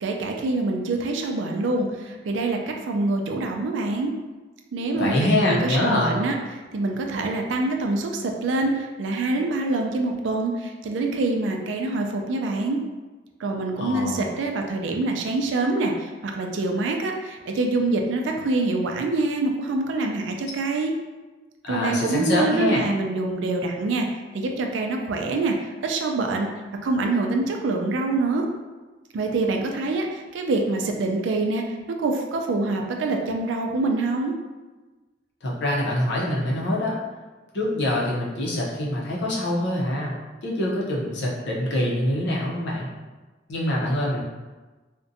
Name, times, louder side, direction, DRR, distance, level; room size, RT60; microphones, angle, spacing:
voice 1, 0.0-4.1 4.7-6.3 6.7-12.8 13.4-20.9 21.7-24.1 24.3-26.5 26.8-28.4 29.1-31.6 32.0-34.3, right 2 dB, 75° right, 2 dB, 0.4 m, -25 dB
voice 2, 5.0-6.2 13.8-14.3 21.6-22.8 35.4-37.0 37.5-40.2 40.4-42.9 43.5-44.2, left 1 dB, 65° left, -4 dB, 0.6 m, -24 dB
2.5 x 2.1 x 2.6 m, 1.2 s
head